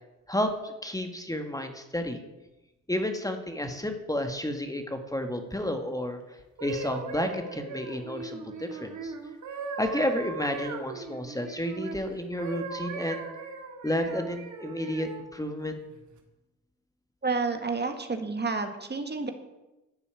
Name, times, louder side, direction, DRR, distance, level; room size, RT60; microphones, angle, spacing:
voice 1, 0.3-2.2 2.9-9.1 9.8-13.3 13.8-15.8, left 1 dB, 10° left, 6 dB, 1.8 m, -31 dB
sound 1, 6.4-12.0 12.4-15.3 15.9-16.2, right 4 dB, 70° right, 2.2 m, -39 dB
voice 2, 17.2-19.3, right 4 dB, 35° right, 6 dB, 1.8 m, -30 dB
12.0 x 6.9 x 8.9 m, 1.0 s
supercardioid pair, 60°, 31 cm